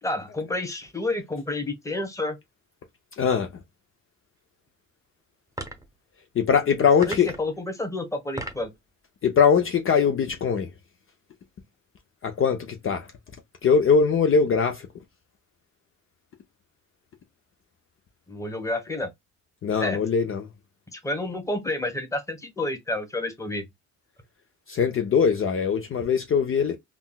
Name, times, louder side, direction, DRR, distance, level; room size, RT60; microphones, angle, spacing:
voice 1, 0.0-2.4 7.0-8.7 18.3-19.1 19.8-20.0 20.9-23.6, left 2 dB, 10° left, 1.2 m, -30 dB
voice 2, 3.2-3.5 6.3-7.3 9.2-10.7 12.2-13.1 13.6-14.9 19.6-20.5 24.7-26.8, left 6 dB, 45° left, 0.6 m, -21 dB
sound 1, 5.5-5.9 7.0-7.5 8.1-8.7, right 1 dB, 10° right, 0.8 m, -36 dB
3.7 x 2.3 x 2.2 m
cardioid pair, 90°, 30 cm